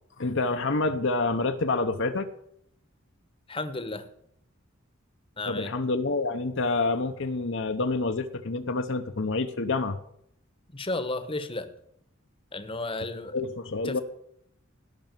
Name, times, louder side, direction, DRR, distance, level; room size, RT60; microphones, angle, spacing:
voice 1, 0.2-2.3 5.5-10.0 13.3-14.0, left 3 dB, 60° left, 7 dB, 0.9 m, -27 dB
voice 2, 3.5-4.1 5.4-5.7 10.7-11.7 12.5-13.3 13.8-14.0, left 2 dB, 25° left, 11 dB, 1.1 m, -33 dB
17.5 x 6.2 x 9.1 m, 0.74 s
head